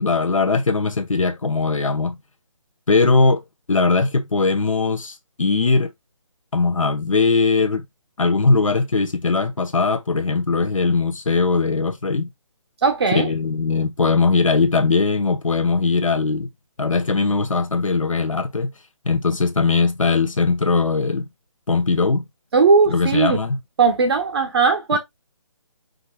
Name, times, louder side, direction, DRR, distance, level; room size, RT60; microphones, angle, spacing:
voice 1, 0.0-2.2 2.9-5.9 6.5-7.8 8.2-12.3 13.1-16.5 16.8-18.7 19.0-21.3 21.7-22.2 22.9-23.6 24.9-25.0, left 4 dB, 80° left, 0.9 m, -20 dB
voice 2, 12.8-13.3 22.5-23.4 23.8-25.0, right 4 dB, 50° right, 1.3 m, -17 dB
5.2 x 4.7 x 2.2 m
figure-of-eight pair, 145°, 17 cm